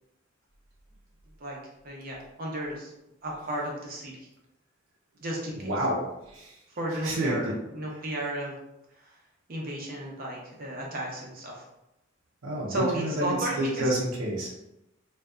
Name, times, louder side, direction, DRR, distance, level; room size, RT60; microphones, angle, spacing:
voice 1, 1.8-2.9 3.2-4.2 5.2-5.7 6.8-8.5 9.0-9.1 9.5-11.6 12.7-13.9, right 1 dB, 45° right, -2 dB, 0.6 m, -33 dB
voice 2, 5.6-6.0 6.3-6.6 6.9-7.5 12.4-14.5, right 1 dB, 85° right, -2 dB, 0.5 m, -29 dB
2.6 x 2.2 x 2.3 m, 0.91 s
head